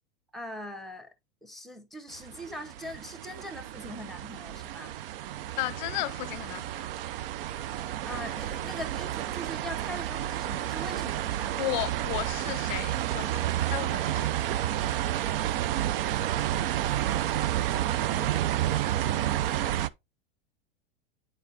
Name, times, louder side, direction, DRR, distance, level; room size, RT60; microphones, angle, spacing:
voice 1, 0.3-1.1 1.4-5.0 8.0-11.6 16.5-16.7 17.0-19.4, equal, ahead, 0.8 m, -42 dB
sound 1, 2.1-19.9, right 12 dB, 70° right, 0.6 m, -30 dB
voice 2, 5.6-6.9 11.5-14.3, left 19 dB, 50° left, 0.4 m, -34 dB
9.1 x 4.3 x 2.7 m
supercardioid pair, 135°, 30 cm